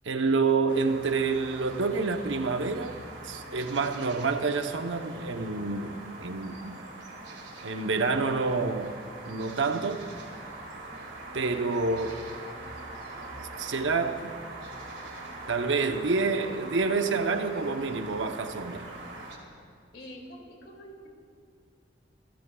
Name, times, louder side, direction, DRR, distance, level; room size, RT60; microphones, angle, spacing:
voice 1, 0.0-3.0 3.2-6.8 7.6-9.0 9.3-10.1 11.3-12.2 13.6-14.3 15.5-18.9, right 4 dB, 85° right, 0.8 m, -28 dB
sound 1, 0.7-19.4, right 2 dB, 70° right, 2.1 m, -43 dB
voice 2, 19.9-21.1, equal, 65° left, 2.5 m, -45 dB
27.5 x 14.0 x 2.3 m
head